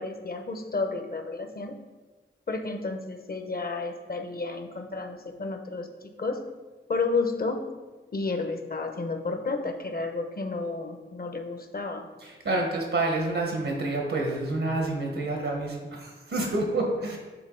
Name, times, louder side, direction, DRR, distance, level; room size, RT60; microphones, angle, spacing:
voice 1, 0.0-1.8 2.5-6.5 6.9-7.7 8.1-12.1, left 3 dB, 45° left, 6 dB, 0.8 m, -31 dB
voice 2, 12.2-17.2, right 2 dB, 80° right, 1 dB, 1.1 m, -28 dB
8.8 x 3.7 x 3.8 m, 1.3 s
wide cardioid pair, 75°, 21 cm